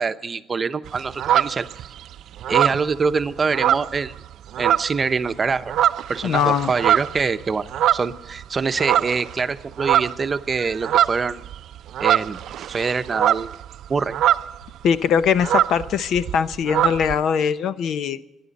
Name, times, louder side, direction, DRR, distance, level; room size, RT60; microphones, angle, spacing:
voice 1, 0.0-1.9 2.5-4.2 4.6-5.8 6.1-7.7 7.9-11.4 12.0-13.5 13.9-14.2, right 5 dB, 35° right, 10 dB, 0.8 m, -25 dB
sound 1, 0.9-2.0 2.4-4.3 4.5-5.1 5.5-8.4 8.8-9.4 9.6-14.7 15.0-15.1 15.3-17.2, right 11 dB, 75° right, 0.4 m, -22 dB
voice 2, 6.2-6.7 14.8-18.2, left 7 dB, 75° left, 14 dB, 0.7 m, -21 dB
26.5 x 11.0 x 4.1 m, 0.91 s
cardioid pair, 90°, 0 cm